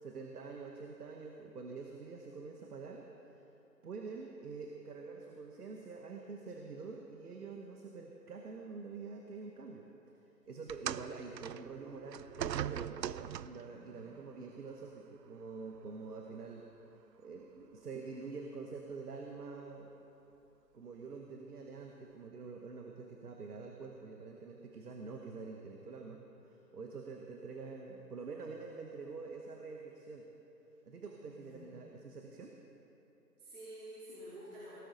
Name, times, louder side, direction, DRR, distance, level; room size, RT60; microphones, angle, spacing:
voice 1, 0.0-3.1 3.8-9.9 10.5-16.7 17.2-19.9 20.7-26.2 26.5-30.3 30.9-32.6, right 4 dB, 65° right, 2 dB, 1.3 m, -46 dB
sound 1, 10.7-13.7 14.7-14.9 15.7-15.8, right 10 dB, 90° right, 0.5 m, -40 dB
voice 2, 31.2-31.7 33.4-34.7, right 1 dB, 50° right, -10 dB, 3.6 m, -50 dB
17.5 x 13.0 x 4.0 m, 2.9 s
hypercardioid pair, 160°, 49 cm